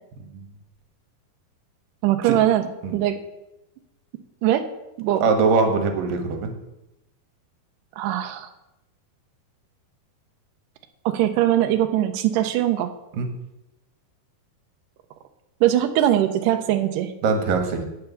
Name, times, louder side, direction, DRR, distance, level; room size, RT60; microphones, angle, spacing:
voice 1, 2.0-2.7 2.9-3.2 4.4-4.6 5.0-5.2 8.0-8.5 11.1-12.9 15.6-17.1, right 12 dB, 85° right, 6 dB, 1.9 m, -21 dB
voice 2, 5.2-6.5 13.1-13.3 17.2-17.9, right 4 dB, 65° right, 6 dB, 2.8 m, -22 dB
9.1 x 6.7 x 6.9 m, 0.90 s
omnidirectional pair, 4.5 m